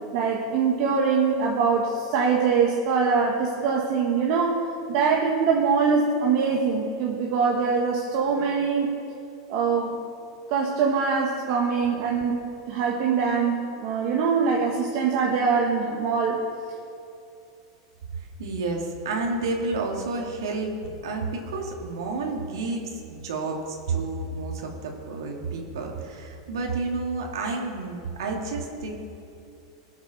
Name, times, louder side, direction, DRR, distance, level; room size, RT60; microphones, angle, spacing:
voice 1, 0.1-9.0 9.5-10.0 10.5-12.4 12.7-16.4, right 5 dB, 50° right, -1 dB, 1.4 m, -23 dB
voice 2, 18.4-20.7 21.0-23.6 23.9-29.0, right 3 dB, 85° right, 0 dB, 2.3 m, -30 dB
19.5 x 7.2 x 6.5 m, 2.6 s
supercardioid pair, 145°, 2 cm